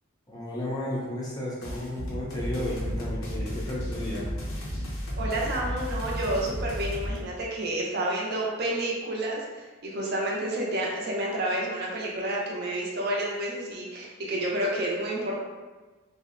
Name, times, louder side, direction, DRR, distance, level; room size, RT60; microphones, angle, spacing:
voice 1, 0.3-4.3, left 1 dB, 15° left, -6 dB, 0.4 m, -33 dB
sound 1, 1.6-7.2, equal, 70° left, 0.6 m, -33 dB
voice 2, 5.2-15.3, right 1 dB, 45° right, -3 dB, 0.5 m, -30 dB
2.6 x 2.0 x 2.4 m, 1.3 s
head